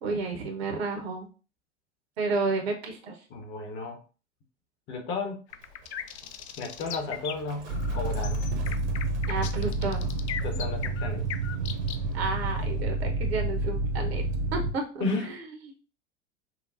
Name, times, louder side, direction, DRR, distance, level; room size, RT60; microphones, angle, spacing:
voice 1, 0.0-1.3 2.2-3.2 9.3-10.1 12.1-14.2 14.5-15.4, right 3 dB, 60° right, 3 dB, 1.1 m, -31 dB
voice 2, 3.3-4.0 4.9-5.4 6.6-8.4 10.4-11.2 15.0-15.3, left 3 dB, 30° left, 4 dB, 0.9 m, -33 dB
sound 1, 5.5-12.0, left 9 dB, 70° left, 0.5 m, -38 dB
Livestock farm animals working animals, 5.5-12.9, right 3 dB, 35° right, 0.9 m, -49 dB
sound 2, 7.7-14.7, right 2 dB, 75° right, 0.6 m, -29 dB
5.8 x 2.2 x 2.6 m, 0.35 s
figure-of-eight pair, 85°, 36 cm